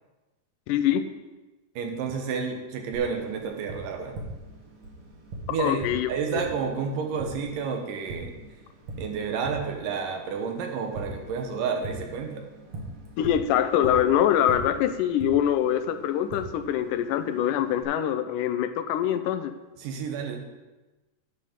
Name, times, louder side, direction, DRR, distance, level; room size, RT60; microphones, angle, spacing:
voice 1, 0.7-1.0 5.6-6.4 13.2-19.5, left 10 dB, 85° left, 10 dB, 2.1 m, -24 dB
voice 2, 1.8-4.1 5.5-8.3 9.0-12.5 19.8-20.4, right 5 dB, 85° right, 3 dB, 2.7 m, -30 dB
Tap, 2.9-17.8, right 1 dB, 60° right, 2.6 m, -42 dB
10.0 x 6.7 x 5.1 m, 1.1 s
omnidirectional pair, 3.8 m